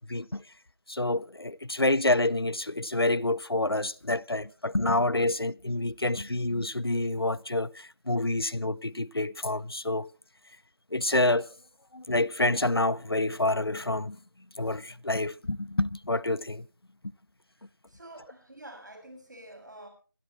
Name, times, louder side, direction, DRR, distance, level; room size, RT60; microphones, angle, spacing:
voice 1, 0.1-0.4 0.9-10.1 10.9-11.5 11.9-14.2 14.6-16.7, left 2 dB, 85° left, 0.7 m, -28 dB
voice 2, 17.5-19.9, right 1 dB, 50° right, 6.6 m, -48 dB
25.0 x 11.5 x 3.2 m
figure-of-eight pair, 170°, 12 cm